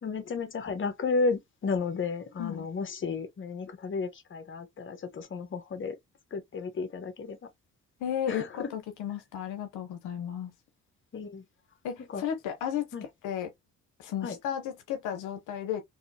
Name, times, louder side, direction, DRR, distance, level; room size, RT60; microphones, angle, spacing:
voice 1, 0.0-6.0 6.3-7.4 8.3-8.7 11.1-11.4 12.1-12.2 12.9-13.0 14.2-14.4, left 4 dB, 40° left, 1.1 m, -33 dB
voice 2, 8.0-10.5 11.8-13.5 14.0-15.8, left 9 dB, 85° left, 0.7 m, -34 dB
3.6 x 2.8 x 2.7 m
cardioid pair, 90°, 30 cm